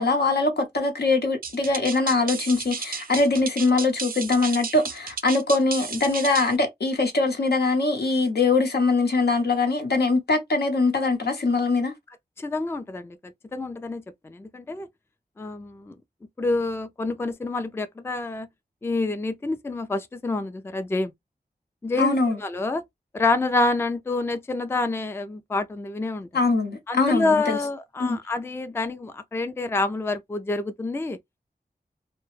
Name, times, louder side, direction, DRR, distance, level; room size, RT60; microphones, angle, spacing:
voice 1, 0.0-11.9 22.0-22.4 26.3-27.6 28.0-28.2, left 3 dB, 75° left, 0.7 m, -22 dB
sound 1, 1.4-6.6, right 5 dB, 60° right, 0.5 m, -33 dB
voice 2, 12.4-13.2 13.5-14.9 15.4-16.0 16.4-18.5 18.8-21.1 21.8-22.8 23.1-26.3 26.9-31.2, left 3 dB, 15° left, 0.3 m, -27 dB
2.1 x 2.0 x 3.0 m
cardioid pair, 45°, 17 cm